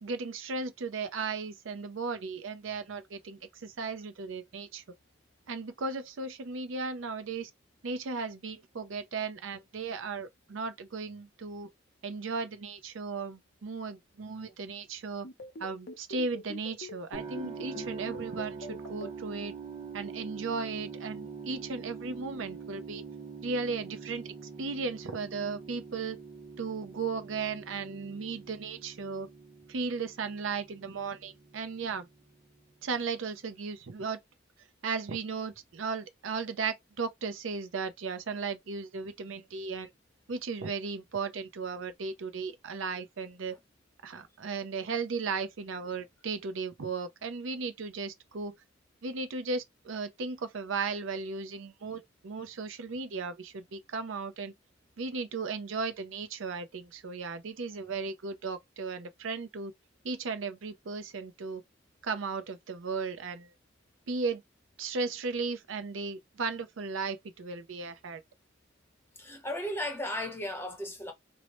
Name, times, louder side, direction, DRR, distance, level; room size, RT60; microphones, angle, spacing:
voice 1, 0.0-4.8 5.5-7.5 7.8-11.7 12.0-15.3 15.6-19.5 19.9-23.0 23.4-26.2 26.6-29.3 29.7-32.1 32.8-34.2 34.8-39.9 40.3-43.6 44.0-48.5 49.0-54.5 55.0-59.7 60.0-61.6 62.0-63.5 64.1-64.4 64.8-68.2, right 4 dB, 75° right, 0.6 m, -36 dB
sound 1, 15.2-19.1, left 2 dB, 50° left, 0.6 m, -43 dB
sound 2, 17.1-33.1, right 5 dB, 25° right, 0.6 m, -45 dB
voice 2, 69.2-71.1, left 1 dB, 10° left, 0.8 m, -35 dB
2.6 x 2.1 x 2.9 m
head